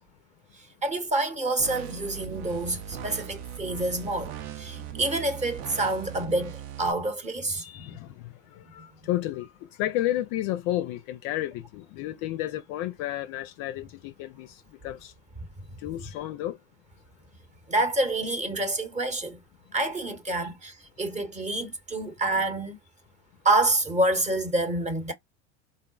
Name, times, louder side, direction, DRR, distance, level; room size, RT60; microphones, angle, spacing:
voice 1, 0.8-7.6 7.9-8.0 17.7-19.4 19.7-22.8 23.4-25.1, right 2 dB, 20° right, 0.8 m, -27 dB
sound 1, 1.6-6.9, right 9 dB, 50° right, 0.6 m, -39 dB
voice 2, 7.6-8.1 8.7-9.5 9.8-14.5 14.8-15.1 15.8-16.6 20.4-20.5, left 14 dB, 45° left, 0.4 m, -31 dB
3.9 x 2.0 x 2.3 m
hypercardioid pair, 100°, 35 cm